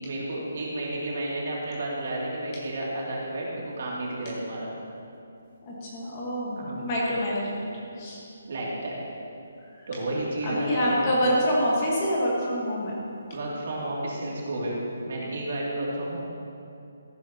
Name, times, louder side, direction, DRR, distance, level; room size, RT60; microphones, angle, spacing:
voice 1, 0.0-4.7 6.5-6.8 8.4-9.0 9.9-11.1 13.3-14.8 15.0-16.2, right 1 dB, 45° right, -5 dB, 2.7 m, -31 dB
voice 2, 5.6-7.7 8.0-8.3 9.8-9.9 10.4-12.9 15.2-15.3, equal, 20° left, -5 dB, 1.5 m, -26 dB
14.5 x 11.5 x 2.9 m, 2.7 s
hypercardioid pair, 175°, 0 cm